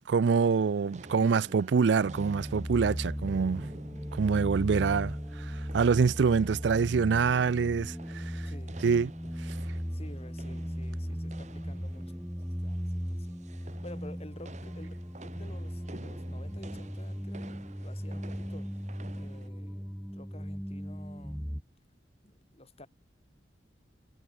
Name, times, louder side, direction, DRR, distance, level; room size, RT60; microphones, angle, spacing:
voice 1, 0.1-3.7 4.1-8.5 8.8-9.1 9.4-9.6, right 5 dB, 75° right, 0.4 m, -26 dB
sound 1, 0.6-19.5, right 2 dB, 40° right, 1.5 m, -51 dB
sound 2, 2.0-21.6, equal, ahead, 1.1 m, -37 dB
voice 2, 8.5-8.8 9.9-14.9 15.2-18.7 19.1-21.4 22.2-22.9, left 1 dB, 35° left, 4.0 m, -51 dB
head